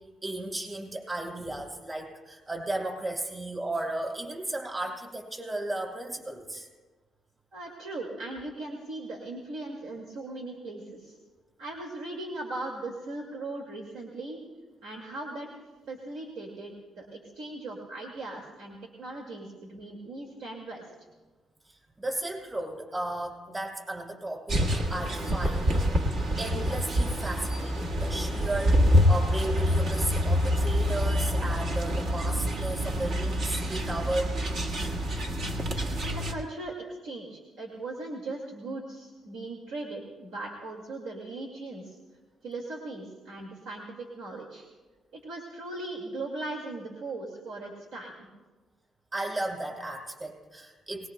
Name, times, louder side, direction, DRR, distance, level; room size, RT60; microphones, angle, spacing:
voice 1, 0.0-6.7 22.0-25.9 26.4-34.4 49.1-51.1, right 2 dB, 20° right, -2 dB, 5.6 m, -34 dB
voice 2, 7.5-11.2 11.6-14.4 14.8-15.5 15.9-20.9 36.0-42.0 42.4-44.7 45.1-48.3, right 2 dB, 85° right, 0 dB, 2.1 m, -39 dB
sound 1, 24.5-36.3, equal, 65° right, 1.6 m, -26 dB
22.5 x 20.0 x 2.2 m, 1.3 s
cardioid pair, 90°, 0 cm